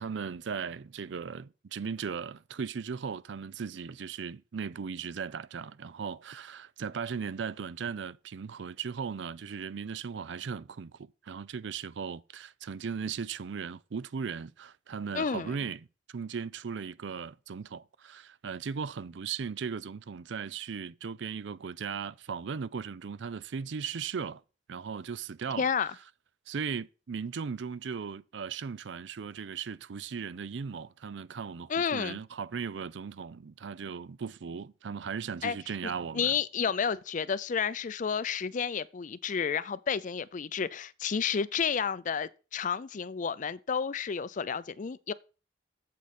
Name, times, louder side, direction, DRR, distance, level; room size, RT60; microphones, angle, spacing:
voice 1, 0.0-11.0 11.2-15.9 16.1-24.4 24.7-25.7 26.5-36.3, right 6 dB, 65° right, 0.4 m, -37 dB
voice 2, 15.1-15.5 25.6-25.9 31.7-32.2 35.4-35.6 35.8-45.1, left 6 dB, 40° left, 0.4 m, -31 dB
8.4 x 7.7 x 4.2 m
head